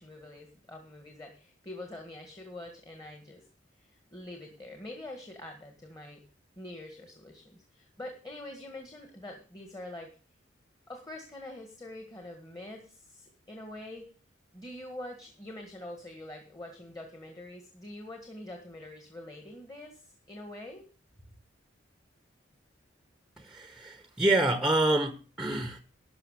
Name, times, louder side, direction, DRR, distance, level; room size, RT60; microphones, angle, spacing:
voice 1, 0.0-3.4 3.8-6.2 6.6-10.2 10.9-14.1 14.5-20.9, left 1 dB, 20° left, 3 dB, 1.8 m, -45 dB
voice 2, 23.4-25.8, right 2 dB, ahead, 8 dB, 1.0 m, -27 dB
12.5 x 5.8 x 8.4 m, 0.37 s
head